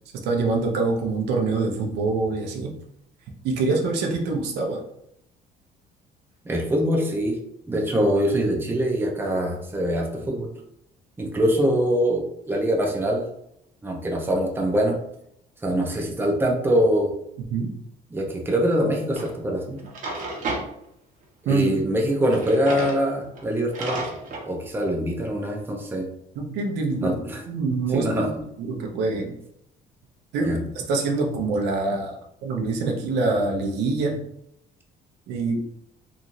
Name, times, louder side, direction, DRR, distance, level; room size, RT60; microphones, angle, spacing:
voice 1, 0.2-2.7 3.4-4.8 17.5-17.7 21.5-21.8 26.4-27.1 27.5-29.3 30.3-30.6 30.9-32.2 32.4-34.2 35.3-35.6, right 3 dB, 85° right, 1 dB, 0.7 m, -25 dB
voice 2, 6.4-7.4 7.7-10.5 11.2-13.3 13.8-15.0 15.6-17.1 18.1-19.8 21.4-24.0 24.5-26.1 27.0-27.4 27.9-28.4 30.4-30.6, equal, 15° right, 0 dB, 0.6 m, -23 dB
Drawer open or close, 19.2-19.3 19.8-20.7 22.2-23.0 23.4-23.5 23.7-24.4, right 2 dB, 50° right, 1.0 m, -31 dB
3.0 x 2.6 x 2.6 m, 0.76 s
cardioid pair, 110°, 17 cm